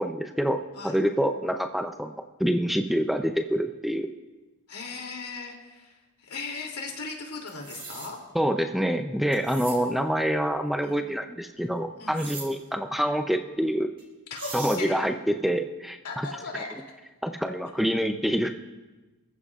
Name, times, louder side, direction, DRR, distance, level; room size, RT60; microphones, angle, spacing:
voice 1, 0.0-2.1 2.4-4.1 8.3-13.9 14.5-16.3 17.2-18.5, equal, ahead, 6 dB, 0.5 m, -26 dB
voice 2, 4.7-8.2 10.8-11.0 12.0-12.2 14.3-14.9 16.0-16.7, left 4 dB, 85° left, 0 dB, 2.9 m, -38 dB
sound 1, 7.5-8.1 9.3-9.8 12.1-12.5 14.0-14.1 14.3-14.8, right 4 dB, 25° right, 4.5 m, -39 dB
27.5 x 14.5 x 2.4 m, 1.2 s
head